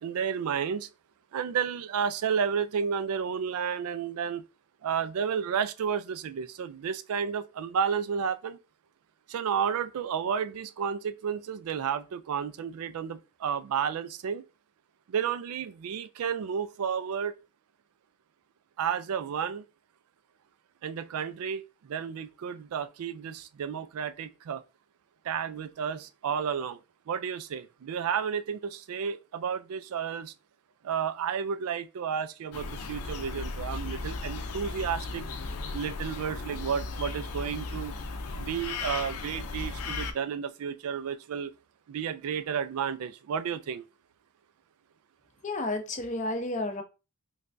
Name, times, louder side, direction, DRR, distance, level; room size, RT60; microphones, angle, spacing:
voice 1, 0.0-0.9 1.3-4.4 4.8-8.6 9.3-14.4 15.1-17.3 18.8-19.6 20.8-24.6 25.2-26.8 27.1-30.3 30.8-35.3 35.7-37.9 38.4-41.5 41.9-43.9, right 7 dB, 80° right, 0.3 m, -32 dB
sound 1, 32.5-40.1, left 3 dB, 85° left, 0.5 m, -36 dB
voice 2, 45.4-46.8, left 2 dB, 35° left, 0.5 m, -31 dB
3.3 x 3.2 x 2.5 m
head